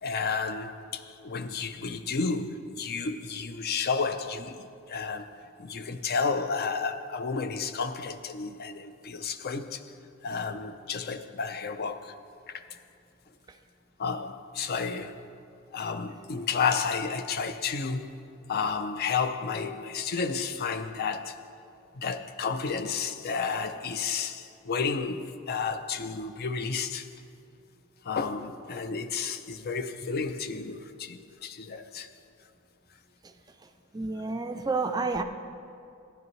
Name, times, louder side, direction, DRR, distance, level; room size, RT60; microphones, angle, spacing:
voice 1, 0.0-4.6 4.9-5.3 5.6-9.9 10.2-12.1 12.5-12.6 14.0-15.2 15.7-18.2 18.5-21.4 22.0-27.1 28.0-32.1, left 5 dB, 50° left, 0.5 m, -31 dB
voice 2, 33.9-35.2, right 3 dB, 20° right, 0.4 m, -29 dB
13.5 x 10.0 x 3.1 m
head